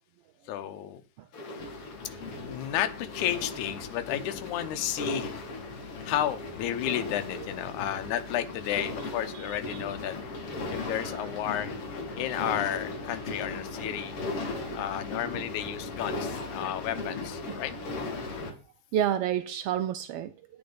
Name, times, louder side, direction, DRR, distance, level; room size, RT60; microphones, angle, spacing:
voice 1, 0.5-1.0 2.4-5.4 6.1-10.2 10.7-11.7 12.2-14.1 14.7-17.7, left 11 dB, 80° left, 2.3 m, -32 dB
sound 1, 1.3-18.5, left 2 dB, 50° left, 2.8 m, -37 dB
voice 2, 9.3-9.8 10.4-11.3 14.4-14.8 18.9-20.3, right 10 dB, 85° right, 1.3 m, -32 dB
10.5 x 9.0 x 3.9 m
omnidirectional pair, 3.4 m